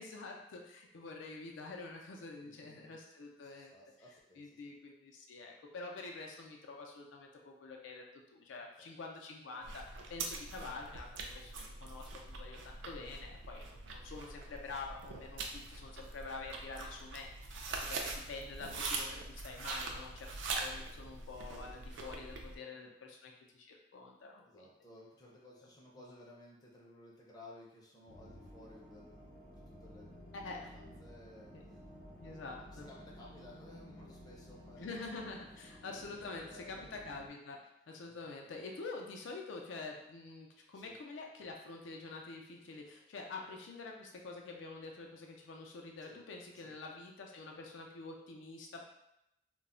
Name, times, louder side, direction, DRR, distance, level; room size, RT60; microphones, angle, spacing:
voice 1, 0.0-3.7 4.4-8.0 8.3-9.8 10.1-20.3 20.6-24.7 26.0-26.1 30.3-30.7 31.5-31.6 32.2-32.9 34.8-48.8, left 3 dB, 80° left, 1 dB, 0.4 m, -47 dB
voice 2, 2.4-3.0 3.4-4.7 8.8-8.9 14.0-14.2 18.1-18.2 22.4-22.5 22.7-22.9 24.4-30.1 30.7-31.5 32.7-35.1 35.9-36.9 38.0-38.7 40.7-40.9 46.0-46.2 46.6-46.7, left 1 dB, 20° left, -4 dB, 0.5 m, -57 dB
sound 1, 9.6-22.6, right 3 dB, 75° right, 0.4 m, -43 dB
sound 2, 28.1-37.3, equal, 55° left, 0.8 m, -54 dB
2.2 x 2.0 x 3.7 m, 0.84 s
head